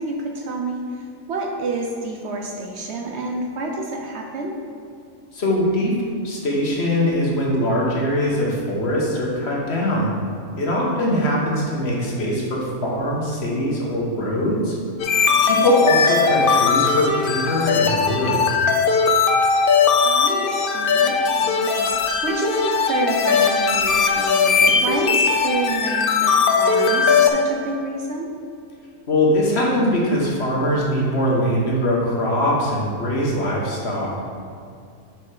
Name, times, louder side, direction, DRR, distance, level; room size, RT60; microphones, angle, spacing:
voice 1, 0.0-4.6 10.9-11.4 15.3-15.4 20.0-28.3, right 2 dB, 60° right, 1 dB, 0.8 m, -29 dB
voice 2, 5.3-5.9 6.2-10.1 10.6-14.8 15.4-18.4 29.1-34.1, left 1 dB, 50° left, -3 dB, 1.4 m, -22 dB
sound 1, 15.0-27.3, left 5 dB, 75° left, 0.5 m, -19 dB
6.4 x 4.4 x 4.9 m, 2.4 s
omnidirectional pair, 1.5 m